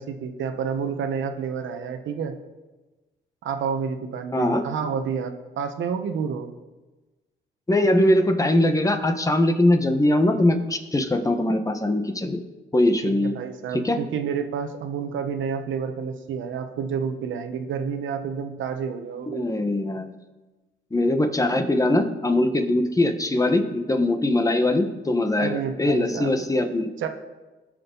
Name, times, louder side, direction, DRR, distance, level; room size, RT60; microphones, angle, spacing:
voice 1, 0.0-2.3 3.4-6.5 13.0-19.5 25.4-26.5 27.0-27.1, right 6 dB, 75° right, 7 dB, 1.2 m, -29 dB
voice 2, 4.3-4.6 7.7-12.4 12.7-13.4 13.7-14.0 19.3-20.1 20.9-26.9, left 1 dB, 15° left, 6 dB, 1.3 m, -21 dB
19.0 x 6.5 x 4.0 m, 1.2 s
cardioid pair, 90°, 20 cm